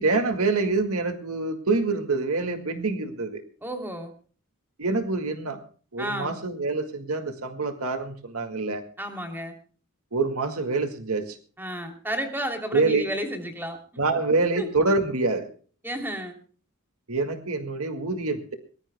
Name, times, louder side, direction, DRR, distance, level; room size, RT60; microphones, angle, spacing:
voice 1, 0.0-3.4 4.8-5.6 5.9-8.8 10.1-11.4 12.7-13.0 14.0-15.5 17.1-18.5, right 3 dB, 85° right, 7 dB, 2.0 m, -26 dB
voice 2, 3.6-4.1 6.0-6.4 9.0-9.5 11.6-13.8 14.5-14.7 15.8-16.4, equal, 10° right, 4 dB, 3.0 m, -32 dB
23.0 x 20.0 x 2.2 m, 0.41 s
head